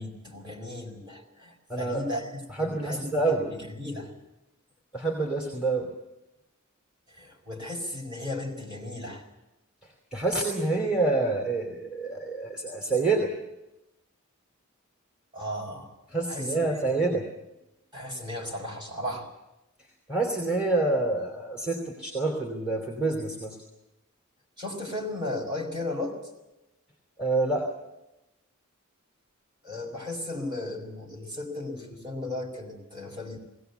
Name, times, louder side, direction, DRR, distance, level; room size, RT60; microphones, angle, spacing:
voice 1, 0.0-4.1 7.1-9.2 15.3-15.9 16.3-16.9 17.9-19.3 24.6-26.2 29.6-33.4, left 1 dB, 20° right, -1 dB, 5.0 m, -35 dB
voice 2, 1.7-2.0 2.5-3.5 4.9-5.9 10.1-13.3 16.1-17.2 20.1-23.6 27.2-27.7, right 3 dB, 5° right, 0 dB, 3.0 m, -27 dB
20.0 x 18.0 x 8.2 m, 0.94 s
head